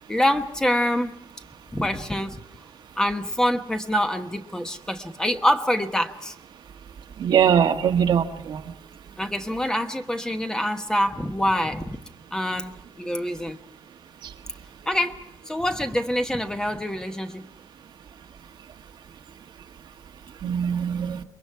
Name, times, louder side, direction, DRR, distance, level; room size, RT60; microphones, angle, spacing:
voice 1, 0.1-1.1 1.7-2.4 3.0-6.3 9.2-12.0 12.3-13.6 14.9-15.2 15.5-17.4, left 1 dB, 10° left, 6 dB, 1.1 m, -25 dB
voice 2, 7.2-8.6 20.4-21.2, right 8 dB, 85° right, 4 dB, 1.6 m, -21 dB
28.0 x 22.5 x 4.7 m, 0.76 s
wide cardioid pair, 165°, 8 cm